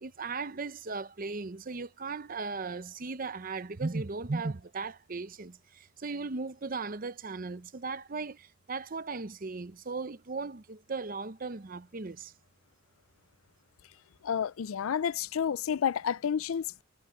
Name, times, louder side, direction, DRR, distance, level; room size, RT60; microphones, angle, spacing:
voice 1, 0.0-5.5 6.0-8.4 8.7-12.3, right 4 dB, 45° right, 0.7 m, -37 dB
voice 2, 14.2-16.8, left 7 dB, 85° left, 0.4 m, -30 dB
head